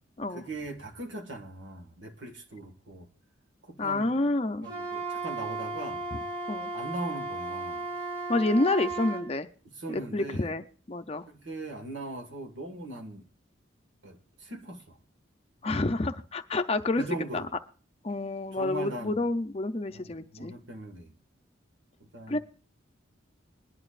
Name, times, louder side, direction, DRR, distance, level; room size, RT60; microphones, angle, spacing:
voice 1, 0.3-3.1 3.6-4.2 4.6-6.0 6.7-7.9 9.7-10.5 11.3-13.3 14.0-15.0 17.0-17.5 18.5-19.2 19.9-21.1 22.0-22.4, right 2 dB, 70° right, 1.7 m, -40 dB
voice 2, 3.8-4.7 6.1-6.2 6.5-6.7 8.3-9.5 9.9-11.3 15.6-17.0 17.3-17.4 18.0-20.5 22.3-22.4, left 2 dB, 30° left, 0.6 m, -28 dB
Wind instrument woodwind instrument, 4.6-9.3, right 3 dB, 25° right, 5.9 m, -35 dB
21.5 x 11.0 x 2.5 m
head